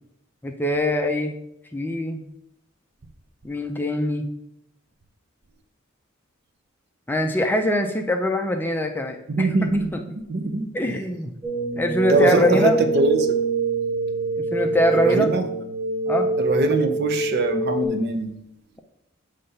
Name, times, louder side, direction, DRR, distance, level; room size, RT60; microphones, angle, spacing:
voice 1, 0.4-1.3 1.7-2.2 3.4-4.3 7.1-9.5 10.7-11.3 11.8-12.8 14.5-15.3 16.1-16.3, left 1 dB, 10° left, 0.4 m, -23 dB
voice 2, 9.3-10.0 10.3-10.7 12.1-13.4 14.9-15.5 16.4-18.3, right 2 dB, 50° right, 0.7 m, -22 dB
sound 1, 11.4-17.9, right 4 dB, 30° right, 1.2 m, -25 dB
6.7 x 3.3 x 5.5 m
head